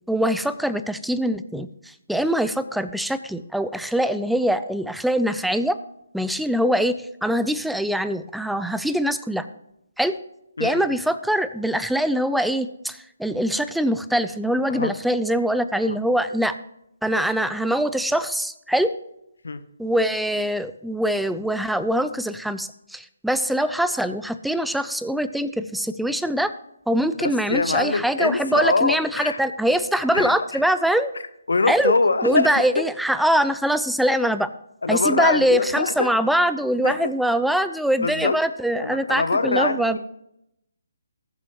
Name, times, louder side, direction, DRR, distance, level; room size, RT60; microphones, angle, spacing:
voice 1, 0.1-5.8 6.1-7.0 7.2-9.5 10.0-10.1 10.6-16.5 17.0-18.9 19.8-26.5 26.9-31.1 31.7-31.9 32.2-34.5 34.9-40.0, equal, ahead, 12 dB, 0.4 m, -23 dB
voice 2, 10.6-11.0 14.7-14.9 15.9-16.0 19.4-19.6 27.2-29.4 30.1-30.6 31.5-32.6 34.8-36.1 36.8-36.9 38.0-38.4 38.8-40.0, left 3 dB, 75° left, 12 dB, 0.8 m, -23 dB
19.5 x 7.4 x 3.0 m, 0.81 s
figure-of-eight pair, 150°, 0 cm